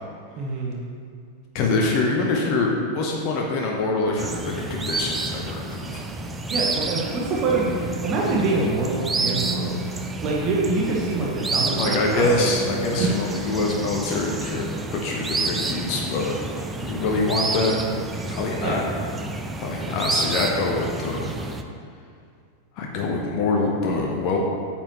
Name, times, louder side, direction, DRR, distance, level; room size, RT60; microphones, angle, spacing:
voice 1, 0.4-0.8 6.5-9.8 10.2-12.5 13.0-13.3 18.6-18.9, right 3 dB, 35° right, -3 dB, 1.2 m, -25 dB
voice 2, 1.5-6.0 7.7-7.8 11.8-16.3 16.8-17.8 18.3-18.8 19.6-21.3 22.8-24.4, left 3 dB, 40° left, 0 dB, 0.9 m, -25 dB
sound 1, 4.2-21.6, right 3 dB, 15° right, 0.6 m, -29 dB
8.7 x 7.3 x 3.1 m, 2.3 s
figure-of-eight pair, 90°, 0 cm